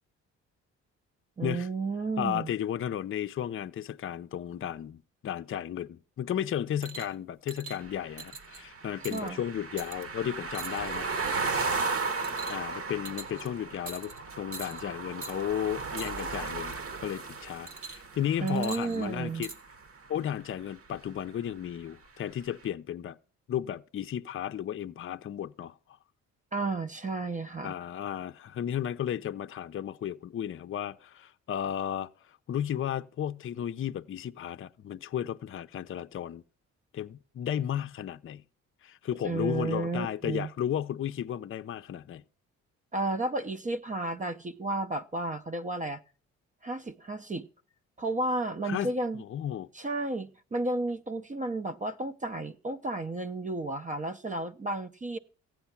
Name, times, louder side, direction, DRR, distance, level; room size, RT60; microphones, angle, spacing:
voice 1, 1.4-2.5 9.1-9.4 18.4-19.5 26.5-27.7 39.2-40.5 42.9-46.0 46.6-47.5 48.0-49.2 49.7-55.2, right 2 dB, 25° right, 0.7 m, -32 dB
voice 2, 2.2-11.1 12.5-19.5 20.1-23.2 23.5-25.7 27.6-36.4 36.9-38.4 38.8-42.2 48.7-48.9 49.1-49.7, left 10 dB, 45° left, 0.6 m, -34 dB
sound 1, 6.8-7.1 7.5-7.8 8.2-8.6 9.0-9.3 9.8-10.0 10.5-11.0 11.4-11.7 12.2-12.8 13.1-13.5 13.9-14.2 14.5-14.8 15.2-15.4 16.0-16.4 17.7-18.2 18.5-19.6 20.4-20.5, right 4 dB, 70° right, 2.0 m, -43 dB
sound 2, 7.8-19.9, right 4 dB, 45° right, 1.2 m, -35 dB
15.0 x 9.1 x 5.8 m
cardioid pair, 90°, 30 cm